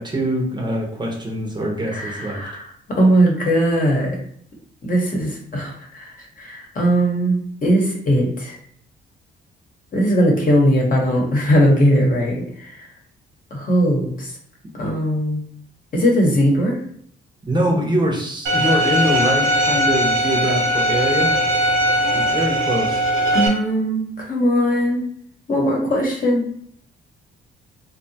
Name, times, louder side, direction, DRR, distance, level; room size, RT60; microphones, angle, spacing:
voice 1, 0.0-2.4 17.5-21.3 22.1-23.1, right 1 dB, 20° right, -1 dB, 0.7 m, -23 dB
voice 2, 1.9-4.2 4.8-7.3 7.6-8.5 9.9-12.9 13.5-14.3 14.8-15.4 15.9-16.8 23.3-25.0 25.5-26.4, equal, 45° left, -1 dB, 0.9 m, -19 dB
Bowed string instrument, 18.5-23.5, equal, 80° right, 0.9 m, -19 dB
2.7 x 2.2 x 2.7 m, 0.64 s
cardioid pair, 90°, 20 cm